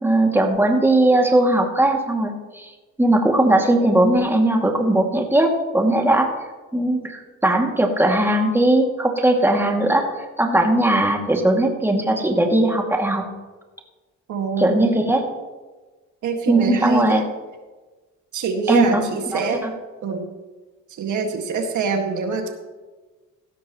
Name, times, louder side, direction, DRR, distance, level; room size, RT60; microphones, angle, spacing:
voice 1, 0.0-2.7 3.0-6.3 6.7-10.1 10.4-13.2 14.6-15.3 16.5-17.2 18.7-19.0 19.3-19.7, right 1 dB, 10° right, 1 dB, 2.3 m, -19 dB
voice 2, 14.3-14.9 16.2-17.2 18.3-19.7 20.0-20.3 21.0-22.5, right 5 dB, 75° right, 4 dB, 1.9 m, -24 dB
16.5 x 13.0 x 3.0 m, 1.2 s
cardioid pair, 90°, 30 cm